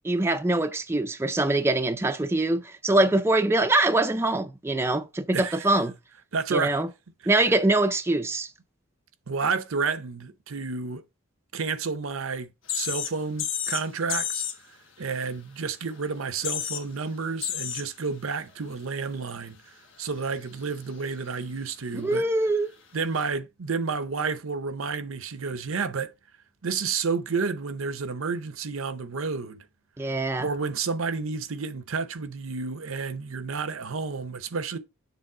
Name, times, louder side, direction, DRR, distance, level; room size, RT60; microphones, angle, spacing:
voice 1, 0.0-5.9 6.5-6.9 7.3-8.5 22.0-22.7 30.0-30.5, right 2 dB, 10° right, 0.4 m, -23 dB
voice 2, 5.3-5.8 6.3-6.8 7.2-7.4 9.3-11.0 11.5-14.4 15.0-19.6 20.0-22.2 22.9-26.1 26.6-29.6 30.4-34.8, right 5 dB, 75° right, 0.7 m, -30 dB
sound 1, 12.7-13.1 13.4-13.8 14.1-14.6 16.0-16.1 16.3-16.8 17.4-17.9 18.5-18.6 23.2-23.3, left 9 dB, 60° left, 1.2 m, -30 dB
7.0 x 3.5 x 4.8 m
head